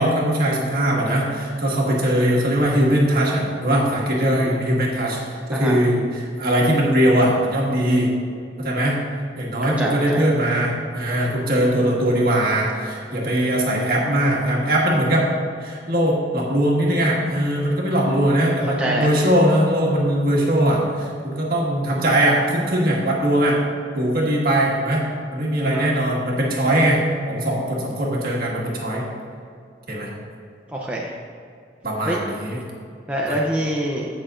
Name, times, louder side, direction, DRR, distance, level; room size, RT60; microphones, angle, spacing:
voice 1, 0.0-5.2 5.5-8.1 8.6-9.0 9.4-15.3 15.6-23.6 23.9-25.1 25.3-27.0 27.3-29.1 29.9-30.1 31.8-32.6 33.3-33.4, right 1 dB, 50° right, -3 dB, 1.7 m, -20 dB
voice 2, 9.8-10.2 18.8-19.1 25.6-25.9 30.7-31.1 32.1-32.2 33.1-34.1, right 1 dB, 5° right, -3 dB, 0.6 m, -24 dB
16.0 x 6.2 x 2.5 m, 2.4 s
head